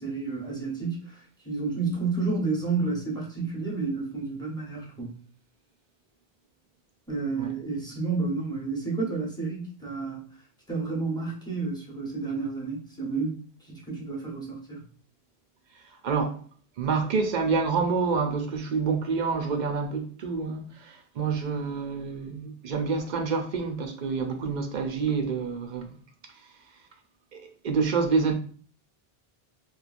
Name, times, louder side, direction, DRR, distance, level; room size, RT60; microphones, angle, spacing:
voice 1, 0.0-5.1 7.1-10.2 10.7-13.4 13.7-14.8, right 4 dB, 5° left, 0.8 m, -30 dB
voice 2, 16.0-16.4 16.8-25.9 27.3-28.3, right 5 dB, 60° right, 0.6 m, -27 dB
3.0 x 2.2 x 2.4 m
omnidirectional pair, 1.0 m